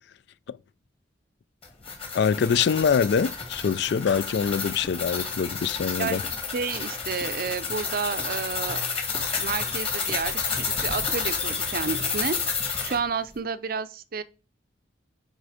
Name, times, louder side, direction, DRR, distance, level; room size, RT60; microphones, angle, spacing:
sound 1, 1.6-13.0, left 5 dB, 30° left, 2.1 m, -30 dB
voice 1, 2.1-6.2, left 6 dB, 60° left, 0.3 m, -24 dB
sound 2, 3.4-12.3, equal, ahead, 0.7 m, -47 dB
Clapping, 4.1-6.4, left 4 dB, 80° left, 1.3 m, -44 dB
voice 2, 6.5-8.8 9.4-12.4 12.8-14.2, right 5 dB, 50° right, 0.5 m, -30 dB
9.0 x 5.0 x 4.9 m
head